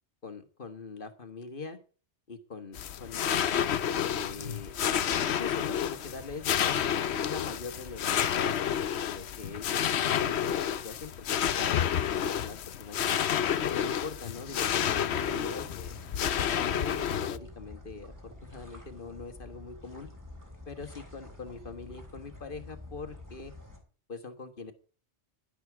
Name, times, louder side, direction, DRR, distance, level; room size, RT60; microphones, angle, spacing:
voice 1, 0.2-1.8 2.3-6.8 7.2-11.3 11.5-13.2 13.7-20.1 20.7-23.5 24.1-24.7, left 4 dB, 50° left, 8 dB, 1.7 m, -43 dB
sound 1, 2.7-17.4, left 9 dB, 70° left, 1.0 m, -30 dB
sound 2, 14.6-23.8, left 1 dB, 15° right, 3.7 m, -48 dB
11.5 x 11.0 x 4.7 m, 0.39 s
omnidirectional pair, 1.2 m